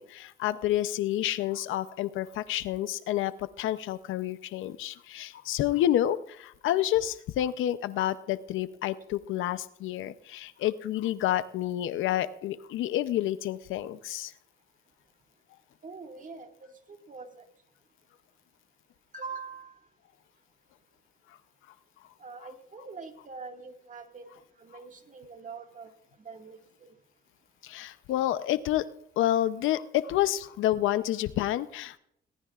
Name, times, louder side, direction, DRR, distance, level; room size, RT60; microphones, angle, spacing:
voice 1, 0.0-14.3 27.6-28.8 29.2-32.0, left 13 dB, 85° left, 13 dB, 0.7 m, -29 dB
voice 2, 15.8-16.5 16.9-17.4 19.1-19.7 22.2-25.9 26.3-26.9, right 4 dB, 40° right, 4 dB, 2.0 m, -44 dB
21.0 x 17.5 x 2.5 m, 0.75 s
cardioid pair, 90°, 20 cm